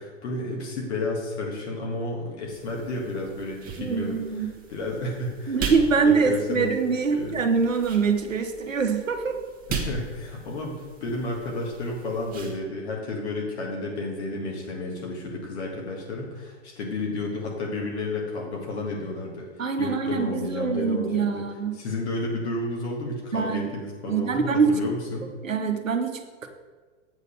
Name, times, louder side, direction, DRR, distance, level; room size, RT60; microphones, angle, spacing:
voice 1, 0.0-5.6 5.9-7.4 9.7-21.4 21.7-25.3, left 2 dB, 55° left, -2 dB, 1.9 m, -32 dB
sound 1, 2.5-12.6, right 5 dB, 20° right, 1.3 m, -39 dB
voice 2, 3.8-4.5 5.5-9.3 19.6-21.7 23.3-23.7 24.1-24.7 25.4-26.5, right 5 dB, 80° right, 6 dB, 1.1 m, -24 dB
8.1 x 4.1 x 7.0 m, 1.4 s
figure-of-eight pair, 105°, 39 cm